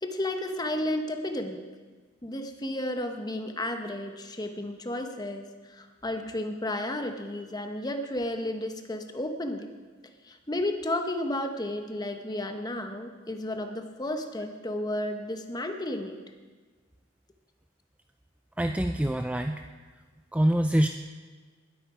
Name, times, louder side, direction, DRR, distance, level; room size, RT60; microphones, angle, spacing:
voice 1, 0.0-1.6 2.2-9.7 10.2-16.2, left 1 dB, 20° left, 6 dB, 1.0 m, -32 dB
voice 2, 18.6-19.7 20.3-20.9, right 1 dB, 5° right, 6 dB, 0.3 m, -25 dB
20.0 x 8.6 x 5.0 m, 1.4 s
head